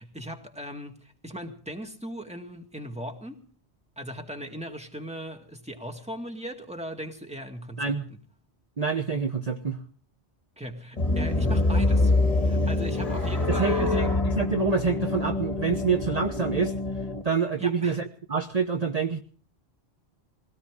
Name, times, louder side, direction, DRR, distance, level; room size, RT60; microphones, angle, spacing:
voice 1, 0.0-3.4 4.0-8.2 10.6-12.1 12.4-14.1 17.6-18.0, equal, 5° right, 3 dB, 2.1 m, -38 dB
voice 2, 8.8-9.8 13.6-16.7 17.2-19.2, right 5 dB, 40° right, 5 dB, 1.1 m, -27 dB
sound 1, 11.0-17.2, left 2 dB, 35° left, 1.9 m, -25 dB
22.5 x 17.5 x 3.7 m, 0.42 s
omnidirectional pair, 1.1 m